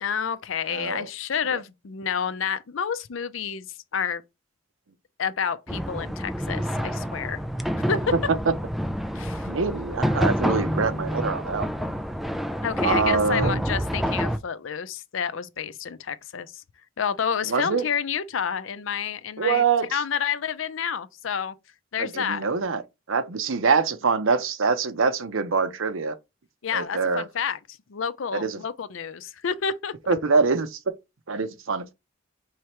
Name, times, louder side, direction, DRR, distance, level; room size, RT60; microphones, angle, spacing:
voice 1, 0.0-3.7 3.9-4.2 5.2-7.4 7.8-8.0 9.1-9.5 12.6-16.6 17.0-19.6 19.9-21.5 21.9-22.4 26.6-27.6 27.9-29.9, left 7 dB, 75° left, 0.5 m, -29 dB
voice 2, 0.7-1.1 9.4-11.9 12.8-13.6 17.5-17.8 19.4-20.0 22.0-22.8 23.1-26.2 26.7-27.3 28.3-28.6 30.1-30.8 31.3-31.9, right 5 dB, 90° right, 0.7 m, -24 dB
sound 1, 5.7-14.4, equal, ahead, 0.4 m, -28 dB
4.6 x 3.3 x 3.0 m
head